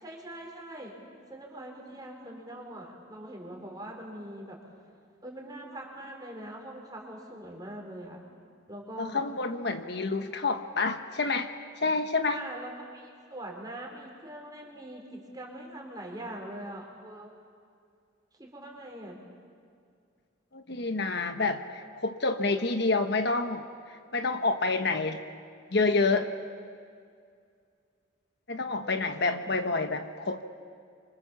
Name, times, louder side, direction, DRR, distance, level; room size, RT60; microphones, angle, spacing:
voice 1, 0.0-4.6 5.2-8.2 8.7-9.2 10.2-10.3 12.3-17.3 18.4-19.2 28.8-29.1, right 1 dB, 20° right, 0 dB, 4.5 m, -42 dB
voice 2, 9.0-11.5 11.8-12.4 20.5-23.6 24.1-25.2 25.7-26.3 28.5-30.4, left 3 dB, 55° left, 7 dB, 1.2 m, -28 dB
28.0 x 25.0 x 7.3 m, 2.3 s
head